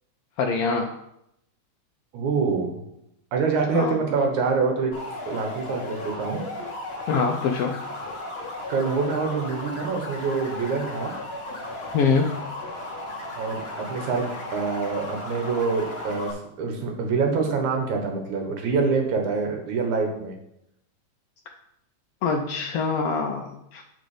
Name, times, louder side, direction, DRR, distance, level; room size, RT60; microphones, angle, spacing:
voice 1, 0.4-0.9 3.7-4.0 7.1-7.8 11.9-12.4 22.2-23.8, left 5 dB, 80° left, 2 dB, 1.4 m, -24 dB
voice 2, 2.1-2.8 3.3-4.9 5.3-6.4 8.7-11.1 13.4-14.3 14.5-20.3, right 4 dB, 80° right, 3 dB, 2.7 m, -25 dB
sound 1, 4.9-16.3, left 2 dB, 55° left, 0.6 m, -35 dB
7.7 x 5.2 x 4.9 m, 0.81 s
omnidirectional pair, 3.3 m